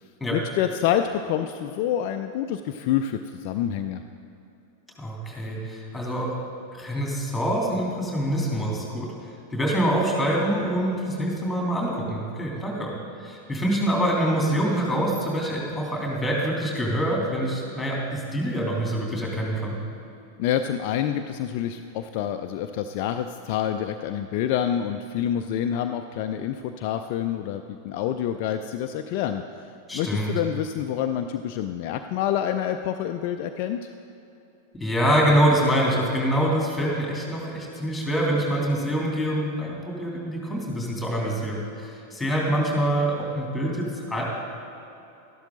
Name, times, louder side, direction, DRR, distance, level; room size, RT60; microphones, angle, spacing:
voice 1, 0.3-4.0 20.4-29.7 29.9-33.8, left 10 dB, 45° left, 7 dB, 0.4 m, -27 dB
voice 2, 5.0-6.4 6.8-9.1 9.5-12.9 13.2-19.8 29.9-30.3 34.8-44.2, right 1 dB, 5° left, -2 dB, 3.0 m, -25 dB
13.0 x 11.5 x 3.9 m, 2.9 s
figure-of-eight pair, 90°, 0 cm